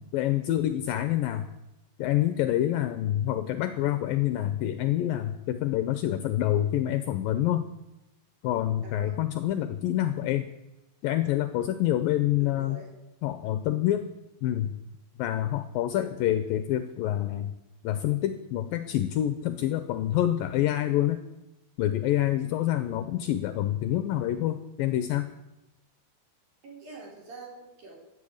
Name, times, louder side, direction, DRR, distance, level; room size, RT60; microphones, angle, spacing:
voice 1, 0.1-1.5 2.0-7.7 8.4-10.5 11.0-12.8 13.2-14.1 14.4-14.8 15.2-17.5 17.8-21.2 21.8-25.3, left 13 dB, 80° left, 11 dB, 2.1 m, -27 dB
voice 2, 8.8-9.2 12.4-12.9 26.6-28.0, right 3 dB, 60° right, -2 dB, 5.8 m, -45 dB
15.5 x 8.0 x 8.6 m, 0.96 s
omnidirectional pair, 4.7 m